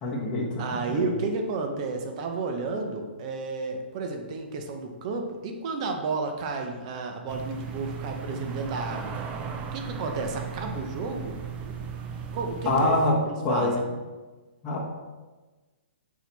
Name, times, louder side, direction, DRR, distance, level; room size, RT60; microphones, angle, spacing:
voice 1, 0.0-1.1 12.6-13.2 13.4-13.8 14.6-15.0, left 2 dB, 15° left, -7 dB, 1.1 m, -25 dB
voice 2, 0.6-9.1 9.7-11.8 12.3-13.0 13.2-13.7, right 3 dB, 35° right, 4 dB, 0.9 m, -32 dB
sound 1, 7.3-13.1, right 6 dB, 20° right, 0.5 m, -36 dB
6.4 x 4.7 x 4.1 m, 1.2 s
hypercardioid pair, 155°, 6 cm